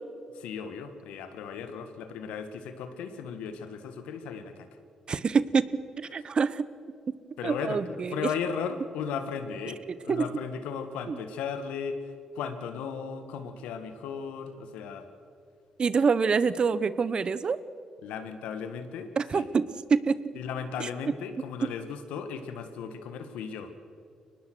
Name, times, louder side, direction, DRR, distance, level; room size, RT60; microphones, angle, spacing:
voice 1, 0.3-4.7 6.1-6.2 7.4-15.1 18.0-19.5 20.4-23.7, left 6 dB, 80° left, 9 dB, 1.7 m, -36 dB
voice 2, 5.1-5.6 6.1-6.7 7.4-8.2 10.1-10.2 11.1-11.2 15.8-17.6 19.2-19.6 19.9-20.2 20.8-20.9, right 5 dB, 45° right, 16 dB, 0.9 m, -25 dB
23.5 x 19.5 x 6.2 m, 2.3 s
supercardioid pair, 50°, 2 cm